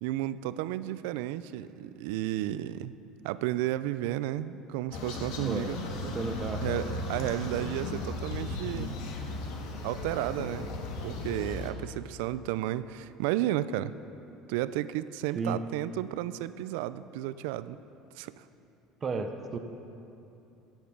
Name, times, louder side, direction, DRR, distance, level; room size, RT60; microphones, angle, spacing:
voice 1, 0.0-3.0 3.2-6.1 6.6-9.0 9.8-10.7 11.0-13.9 14.5-17.8 18.1-18.4, right 14 dB, 85° right, 15 dB, 0.4 m, -33 dB
sound 1, 4.9-11.7, left 2 dB, 75° left, 1.6 m, -36 dB
voice 2, 6.1-6.6 15.3-15.7 19.0-19.6, right 4 dB, 25° right, 6 dB, 0.6 m, -32 dB
16.5 x 7.3 x 6.0 m, 2.8 s
cardioid pair, 165°, 0 cm